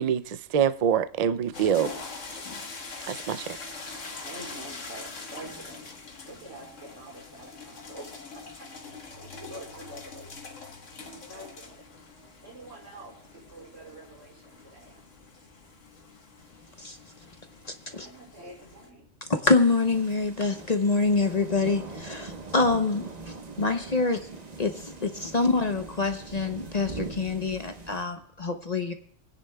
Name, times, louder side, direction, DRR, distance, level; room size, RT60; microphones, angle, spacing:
voice 1, 0.0-1.9 3.1-3.6, right 8 dB, 65° right, 0.4 m, -25 dB
sound 1, 1.5-18.9, left 3 dB, 80° left, 1.7 m, -43 dB
voice 2, 4.2-5.9 6.2-10.6 11.3-11.9 12.4-15.0 17.9-19.1, right 1 dB, 85° right, 4.9 m, -46 dB
voice 3, 19.3-23.1 23.6-24.2 24.6-28.9, left 3 dB, 40° left, 0.8 m, -25 dB
sound 2, 19.5-28.0, right 3 dB, 35° right, 1.1 m, -42 dB
24.5 x 9.8 x 2.3 m
omnidirectional pair, 1.3 m